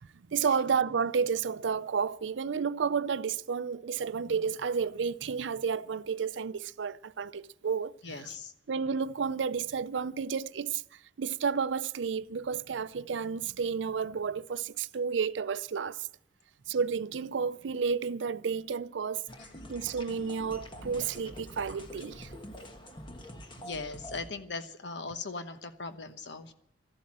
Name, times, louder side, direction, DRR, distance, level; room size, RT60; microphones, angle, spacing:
voice 1, 0.0-7.9 8.7-16.1 16.7-19.2 19.7-22.3, right 6 dB, 90° right, 0.5 m, -31 dB
voice 2, 8.0-8.5 19.4-19.5 23.6-26.5, left 4 dB, 70° left, 1.1 m, -39 dB
sound 1, 19.3-24.3, equal, 25° left, 1.3 m, -46 dB
13.5 x 12.0 x 7.5 m
head